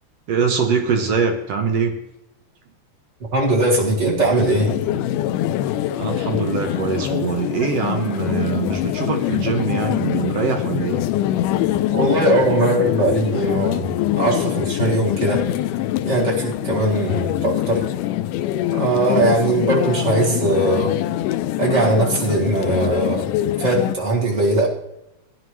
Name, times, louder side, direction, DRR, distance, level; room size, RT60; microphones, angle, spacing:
voice 1, 0.3-2.0 6.0-11.0, right 6 dB, 70° right, 4 dB, 1.7 m, -23 dB
voice 2, 3.3-4.8 11.9-15.5 16.0-17.9 18.7-21.0 21.6-23.3 23.6-24.7, right 2 dB, 30° right, -4 dB, 1.6 m, -20 dB
sound 1, 4.4-24.0, left 13 dB, 90° left, 2.1 m, -24 dB
16.0 x 11.0 x 3.1 m, 0.89 s
omnidirectional pair, 3.6 m